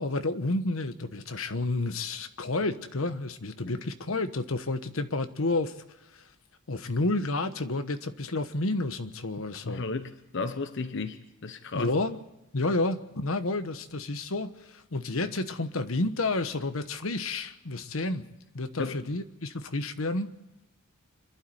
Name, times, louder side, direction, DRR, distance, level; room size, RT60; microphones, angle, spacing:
voice 1, 0.0-5.7 6.1-6.2 6.7-9.8 11.7-12.2 12.5-18.3 18.5-20.3, left 2 dB, 80° left, 1.2 m, -30 dB
voice 2, 9.6-11.9 18.8-19.0, left 3 dB, 60° left, 1.0 m, -34 dB
27.0 x 12.0 x 7.9 m
head